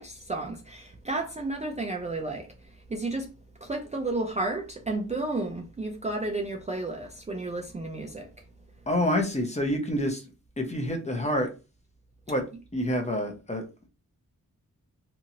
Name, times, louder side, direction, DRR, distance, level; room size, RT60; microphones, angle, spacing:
voice 1, 0.0-2.5 2.9-3.3 3.6-8.3, right 2 dB, 20° right, 0.4 m, -32 dB
voice 2, 8.9-10.2 10.6-11.5 12.3-12.4 12.7-13.6, left 1 dB, 20° left, 0.8 m, -27 dB
2.8 x 2.5 x 2.8 m
wide cardioid pair, 85°, 34 cm